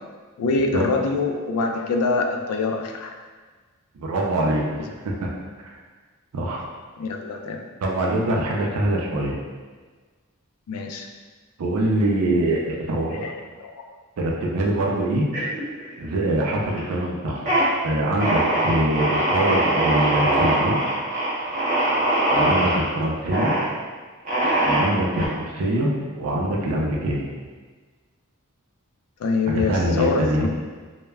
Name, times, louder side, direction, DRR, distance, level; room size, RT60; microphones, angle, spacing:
voice 1, 0.4-3.1 4.8-4.9 7.0-7.7 10.7-11.1 13.1-13.9 29.2-30.5, left 3 dB, 80° left, 7 dB, 0.3 m, -25 dB
voice 2, 4.0-4.6 5.0-5.1 6.3-6.7 7.8-9.3 11.6-13.2 14.2-15.3 16.0-17.5 17.8-20.8 22.3-23.5 24.6-27.3 29.5-30.5, right 1 dB, 85° right, -2 dB, 0.4 m, -23 dB
sound 1, 15.3-16.1 16.4-16.9 17.3-17.7 18.2-22.8 23.3-23.7 24.3-25.3, right 1 dB, 35° right, 0.7 m, -22 dB
2.2 x 2.0 x 3.3 m, 1.4 s
head